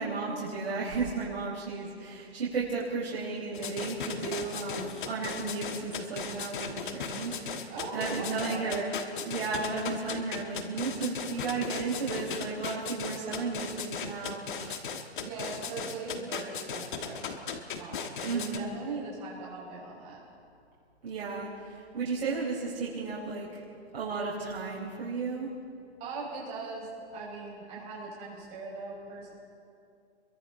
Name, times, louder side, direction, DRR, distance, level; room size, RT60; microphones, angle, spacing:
voice 1, 0.0-8.9 9.2-14.8 18.2-18.7 21.0-23.6 23.9-25.5, right 4 dB, 65° right, -7 dB, 5.0 m, -34 dB
sound 1, 3.5-18.6, left 6 dB, 45° left, 1.6 m, -37 dB
voice 2, 7.7-8.8 15.2-20.2 26.0-29.3, right 3 dB, 20° right, -5 dB, 6.2 m, -40 dB
28.5 x 23.0 x 4.2 m, 2.4 s
hypercardioid pair, 170°, 33 cm